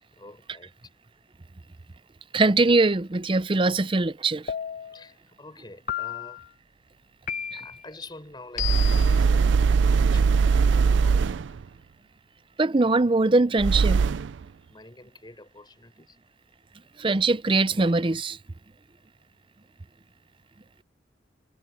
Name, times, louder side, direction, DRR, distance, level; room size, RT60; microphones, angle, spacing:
voice 1, 0.1-0.9 4.9-6.5 7.5-11.4 14.7-16.2, left 2 dB, 25° left, 5.0 m, -47 dB
voice 2, 2.3-4.5 7.5-7.6 12.6-14.0 17.0-18.4, right 3 dB, 30° right, 0.6 m, -22 dB
sound 1, 4.5-5.1 5.9-6.5 7.3-7.9 8.6-9.2, left 10 dB, 45° left, 0.8 m, -32 dB
sound 2, 8.6-11.6 13.6-14.4, right 5 dB, 80° right, 0.4 m, -20 dB
head